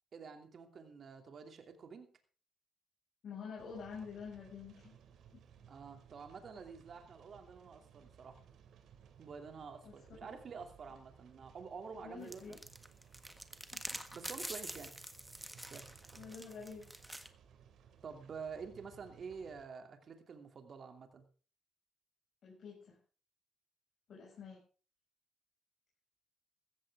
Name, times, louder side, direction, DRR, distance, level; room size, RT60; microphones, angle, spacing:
voice 1, 0.1-2.1 5.7-8.4 9.2-12.6 13.9-14.9 15.6-16.0 18.0-21.2, right 5 dB, 50° right, 5 dB, 2.7 m, -49 dB
voice 2, 3.2-5.0 5.3-5.4 9.8-9.9 10.2-10.4 12.0-12.6 13.7-13.8 16.2-16.8 22.4-23.0 24.1-24.6, left 6 dB, 60° left, -4 dB, 6.0 m, -48 dB
sound 1, 3.6-19.7, right 8 dB, 75° right, 2.7 m, -61 dB
sound 2, 12.3-17.3, right 1 dB, 5° right, 1.5 m, -46 dB
15.5 x 14.0 x 3.6 m, 0.39 s
cardioid pair, 90°, 0 cm